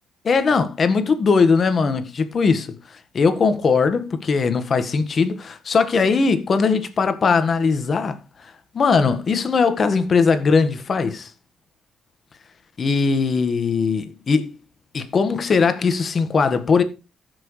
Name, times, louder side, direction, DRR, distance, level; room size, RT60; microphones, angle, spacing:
voice 1, 0.2-2.7 3.1-8.2 8.7-11.3 12.8-14.5 14.9-16.8, left 5 dB, 45° left, 1.5 m, -19 dB
15.0 x 6.2 x 3.2 m
cardioid pair, 90°, 0 cm